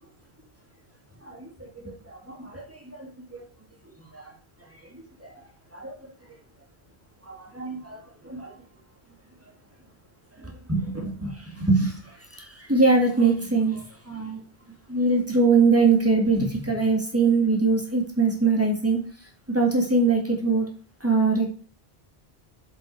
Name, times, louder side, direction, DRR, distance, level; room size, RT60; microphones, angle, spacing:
voice 1, 1.2-3.4 4.1-4.3 4.9-5.4 5.7-6.0 7.2-8.5 10.4-14.4 14.9-19.0 19.5-20.7 21.0-21.5, right 3 dB, 15° right, 0 dB, 2.0 m, -23 dB
7.3 x 5.4 x 4.6 m, 0.41 s
omnidirectional pair, 1.1 m